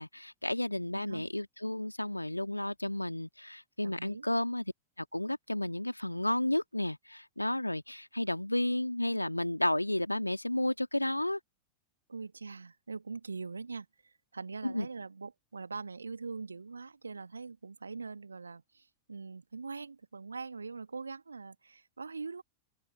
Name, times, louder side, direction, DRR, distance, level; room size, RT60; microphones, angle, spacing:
voice 1, 0.0-4.6 5.0-11.4 14.6-14.9, left 1 dB, 85° left, 2.0 m, -32 dB
voice 2, 0.9-1.3 3.8-4.3 12.1-22.4, right 4 dB, 75° right, 1.6 m, -43 dB
figure-of-eight pair, 90°, 0 cm